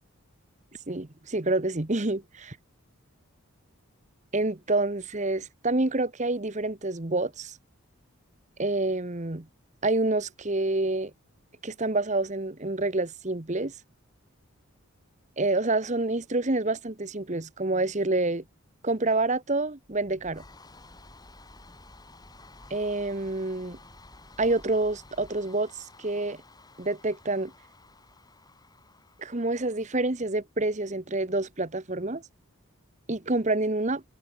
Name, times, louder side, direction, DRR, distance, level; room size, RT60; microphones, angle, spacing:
voice 1, 0.9-2.6 4.3-7.6 8.6-9.5 9.8-11.1 11.6-13.7 15.4-18.4 18.8-20.4 22.7-23.8 24.4-25.7 26.0-26.4 26.8-27.5 29.2-32.2 33.1-34.0, right 2 dB, 35° right, 1.1 m, -27 dB
sound 1, 19.8-30.3, left 2 dB, 20° left, 4.9 m, -52 dB
head